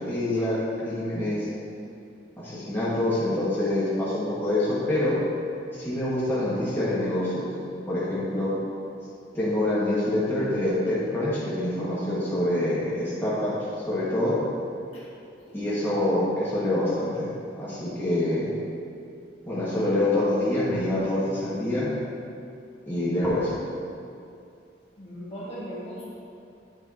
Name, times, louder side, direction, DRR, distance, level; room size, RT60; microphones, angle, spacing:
voice 1, 0.0-1.5 2.4-5.2 5.7-7.5 7.9-8.5 9.3-13.5 13.9-14.4 15.5-17.3 17.6-18.5 19.5-21.9 22.9-23.6, left 1 dB, 15° left, -11 dB, 1.6 m, -26 dB
voice 2, 25.0-26.1, equal, 35° left, -8 dB, 1.8 m, -38 dB
8.7 x 7.0 x 2.8 m, 2.6 s
head